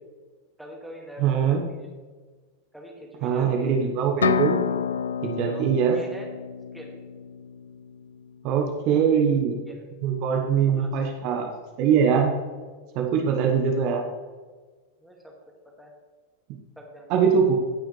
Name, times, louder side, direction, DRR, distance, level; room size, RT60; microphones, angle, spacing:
voice 1, 0.6-1.6 2.7-3.8 5.5-6.3 6.7-7.0 8.9-9.3 9.7-9.8 10.6-10.9 15.0-15.3 15.8-15.9 16.8-17.3, equal, ahead, -1 dB, 2.1 m, -43 dB
voice 2, 1.2-1.6 3.2-4.7 5.2-6.0 8.4-9.6 10.0-11.5 11.8-12.4 12.9-14.1 17.1-17.6, right 7 dB, 45° right, 2 dB, 1.2 m, -22 dB
sound 1, 4.2-8.0, left 7 dB, 70° left, 0.4 m, -29 dB
17.5 x 6.2 x 3.3 m, 1.4 s
figure-of-eight pair, 90°, 0 cm